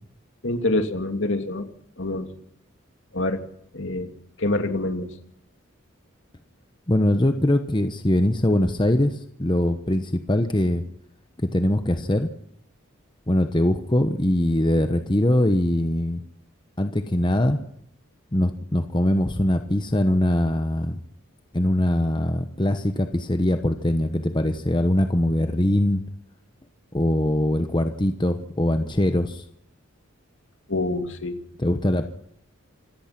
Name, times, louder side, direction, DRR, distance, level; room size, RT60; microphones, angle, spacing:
voice 1, 0.4-1.7 2.0-2.3 3.1-3.4 3.7-4.1 4.4-5.1 30.7-31.4, left 2 dB, 60° left, 6 dB, 2.7 m, -26 dB
voice 2, 6.9-10.8 11.4-12.3 13.3-16.2 16.8-17.6 18.3-21.0 21.5-26.0 26.9-29.4 31.6-32.1, left 1 dB, 20° left, 7 dB, 1.1 m, -22 dB
26.5 x 17.5 x 6.1 m, 0.72 s
head